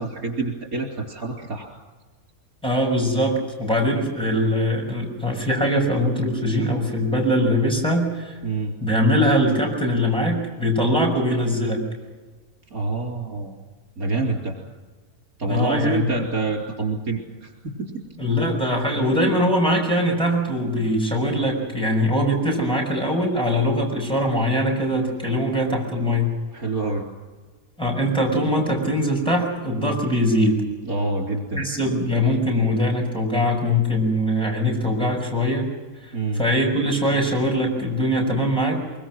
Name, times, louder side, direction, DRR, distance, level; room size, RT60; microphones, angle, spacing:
voice 1, 0.0-1.7 8.4-8.7 12.7-13.5 14.0-14.5 15.4-18.0 26.5-27.0 30.8-31.7 36.1-36.4, right 3 dB, 85° right, 1 dB, 4.5 m, -27 dB
voice 2, 2.6-8.4 8.8-11.8 15.5-16.1 18.2-26.3 27.8-30.6 31.6-35.7 36.0-38.8, equal, 5° left, -1 dB, 6.2 m, -22 dB
24.0 x 23.5 x 6.3 m, 1.3 s
omnidirectional pair, 1.5 m